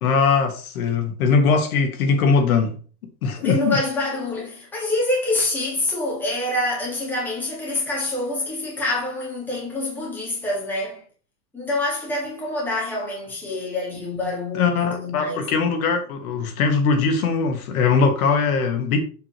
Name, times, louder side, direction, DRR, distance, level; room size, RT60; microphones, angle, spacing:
voice 1, 0.0-2.8 3.2-3.8 14.5-19.0, left 5 dB, 60° left, 1.6 m, -20 dB
voice 2, 3.4-11.0 11.5-15.4, left 2 dB, 5° left, 1.8 m, -26 dB
7.4 x 6.4 x 3.0 m
supercardioid pair, 180°, 49 cm